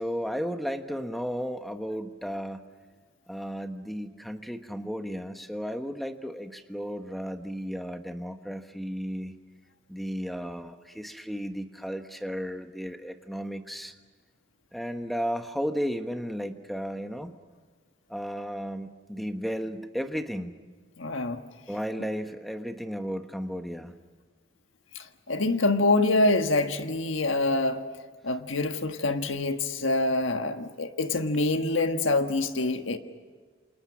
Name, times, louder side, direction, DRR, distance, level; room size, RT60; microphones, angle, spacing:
voice 1, 0.0-2.6 3.3-9.3 9.9-13.9 14.7-17.3 18.1-20.6 21.7-23.9, equal, ahead, 6 dB, 1.2 m, -34 dB
voice 2, 21.0-21.4 24.9-27.8 28.2-33.0, left 2 dB, 90° left, 7 dB, 1.6 m, -26 dB
28.5 x 27.5 x 6.2 m, 1.5 s
head